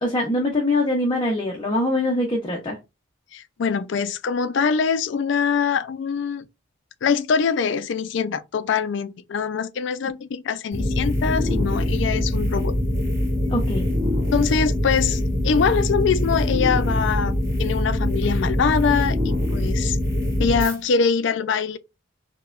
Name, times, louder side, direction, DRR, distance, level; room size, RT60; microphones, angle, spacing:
voice 1, 0.0-2.8 13.5-13.9, left 1 dB, 25° left, 0.6 m, -23 dB
voice 2, 3.3-6.4 7.0-12.7 14.3-20.0 20.4-21.8, left 6 dB, 65° left, 0.3 m, -23 dB
sound 1, 10.7-20.8, left 1 dB, 15° right, 1.4 m, -23 dB
4.6 x 2.2 x 2.3 m
head